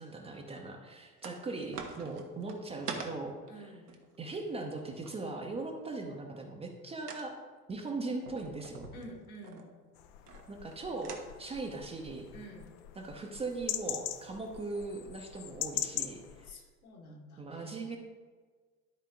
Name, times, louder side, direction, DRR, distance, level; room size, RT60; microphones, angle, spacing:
voice 1, 0.0-3.7 4.2-7.3 7.7-8.9 10.5-12.2 13.0-16.6 17.4-18.0, right 3 dB, 15° right, 1 dB, 0.7 m, -39 dB
sound 1, 1.2-1.4 1.7-5.1 7.1-7.3 8.2-9.6 10.3-10.8 11.0-11.3, right 5 dB, 75° right, 1.2 m, -43 dB
voice 2, 3.5-3.9 8.9-9.7 12.3-12.7 16.4-18.0, right 1 dB, 65° left, -1 dB, 2.1 m, -49 dB
sound 2, 9.9-16.5, left 12 dB, 35° left, 0.5 m, -41 dB
11.5 x 4.5 x 3.8 m, 1.4 s
figure-of-eight pair, 80°, 47 cm